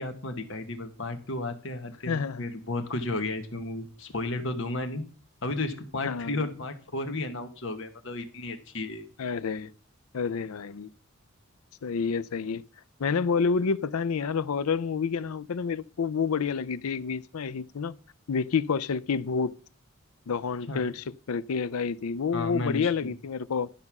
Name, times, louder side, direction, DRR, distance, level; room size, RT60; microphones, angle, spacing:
voice 1, 0.0-5.0 5.4-9.1 20.7-20.8 22.3-23.1, left 2 dB, 60° left, 1.4 m, -33 dB
voice 2, 2.1-2.4 6.0-6.4 9.2-9.7 10.1-10.9 11.8-12.6 13.0-17.9 18.3-19.6 20.3-23.7, left 5 dB, 85° left, 0.5 m, -29 dB
12.0 x 5.4 x 6.0 m
head